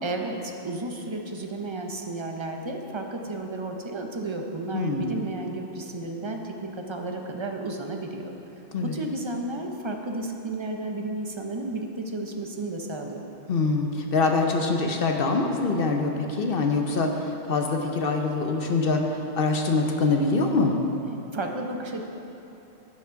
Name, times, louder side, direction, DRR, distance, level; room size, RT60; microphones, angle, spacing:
voice 1, 0.0-8.3 8.8-13.2 21.3-22.0, right 2 dB, 30° right, 2 dB, 0.5 m, -32 dB
voice 2, 4.7-5.1 8.7-9.0 13.5-20.8, left 3 dB, 50° left, 3 dB, 0.8 m, -24 dB
10.5 x 6.0 x 5.7 m, 2.9 s
omnidirectional pair, 1.4 m